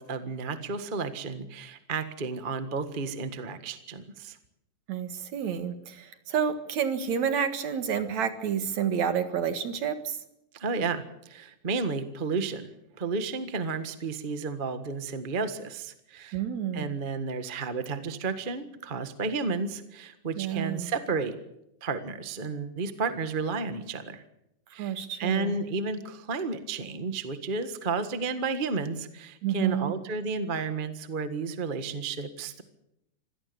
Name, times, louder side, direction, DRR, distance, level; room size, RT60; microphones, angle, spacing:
voice 1, 0.0-4.4 10.5-16.4 16.7-21.4 21.8-24.2 24.7-32.6, right 4 dB, 35° right, 10 dB, 0.8 m, -32 dB
voice 2, 4.9-10.2 16.3-16.9 20.4-20.9 24.8-25.5 29.4-30.0, right 8 dB, 65° right, 9 dB, 3.0 m, -29 dB
25.5 x 17.5 x 6.9 m, 0.83 s
omnidirectional pair, 3.6 m